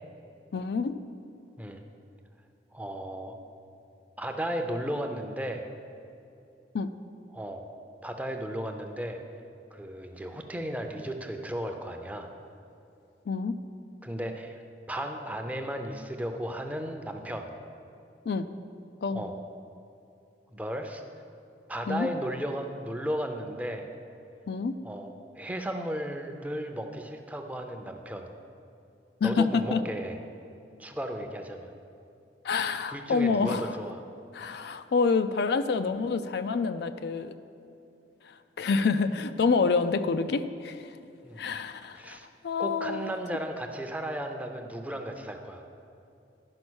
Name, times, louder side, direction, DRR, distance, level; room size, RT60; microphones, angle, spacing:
voice 1, 0.5-1.0 6.7-6.9 13.3-13.6 18.3-18.5 19.0-19.3 21.9-22.1 24.5-24.8 29.2-29.8 32.4-33.8 34.3-37.3 38.3-41.0 41.4-42.2 42.4-43.1, left 4 dB, 65° left, 10 dB, 0.4 m, -27 dB
voice 2, 2.7-3.4 4.2-5.7 7.3-7.7 8.0-9.2 9.7-12.3 14.0-14.6 14.9-17.5 19.1-19.3 20.5-21.0 21.7-23.9 24.8-28.3 29.2-30.2 30.8-31.7 32.9-34.0 41.2-41.4 41.9-42.3 42.6-45.6, right 1 dB, 10° right, 4 dB, 0.6 m, -35 dB
10.5 x 5.3 x 6.2 m, 2.7 s
head